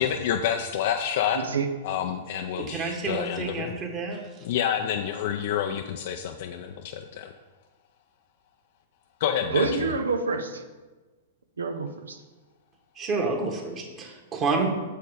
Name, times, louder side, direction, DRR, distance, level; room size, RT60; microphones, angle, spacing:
voice 1, 0.0-1.4 1.8-3.7 4.4-7.3 9.2-9.9, left 9 dB, 55° left, 4 dB, 0.5 m, -28 dB
voice 2, 1.3-1.7 9.5-10.6 11.6-12.2, right 4 dB, 80° right, 5 dB, 0.8 m, -27 dB
voice 3, 2.5-4.2 13.0-14.7, right 3 dB, 30° right, 1 dB, 1.6 m, -29 dB
7.2 x 4.7 x 4.9 m, 1.3 s
hypercardioid pair, 110°, 0 cm